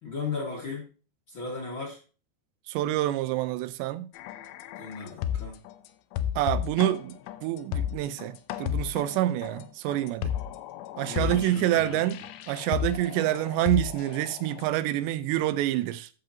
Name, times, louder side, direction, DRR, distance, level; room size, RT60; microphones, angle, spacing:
voice 1, 0.0-0.8 1.3-2.0 4.7-5.6 11.1-12.1, left 4 dB, 45° left, 1.7 m, -36 dB
voice 2, 2.7-4.1 6.4-10.3 11.0-16.1, right 14 dB, 85° right, 2.9 m, -27 dB
sound 1, 4.2-5.7 6.1-14.7, left 10 dB, 85° left, 2.9 m, -33 dB
14.5 x 6.6 x 2.9 m
omnidirectional pair, 5.1 m